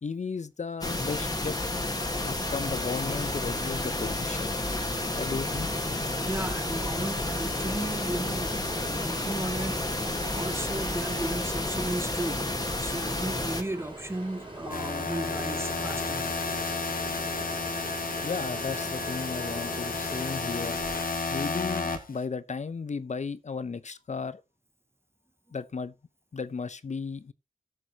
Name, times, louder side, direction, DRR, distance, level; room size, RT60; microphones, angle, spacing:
voice 1, 0.0-1.6 2.1-4.6 5.1-5.7 18.2-20.8 21.3-24.4 25.5-25.9 26.3-27.3, left 5 dB, 55° left, 0.6 m, -35 dB
sound 1, 0.8-13.6, left 2 dB, 25° left, 1.6 m, -31 dB
Ocean, 1.9-21.1, right 1 dB, 35° right, 4.0 m, -41 dB
voice 2, 6.2-8.5 8.9-10.0 10.3-12.5 12.8-16.3, right 1 dB, 15° right, 0.6 m, -35 dB
sound 2, 14.7-22.2, left 3 dB, 85° left, 1.4 m, -32 dB
16.0 x 6.6 x 2.9 m
wide cardioid pair, 70°, 14 cm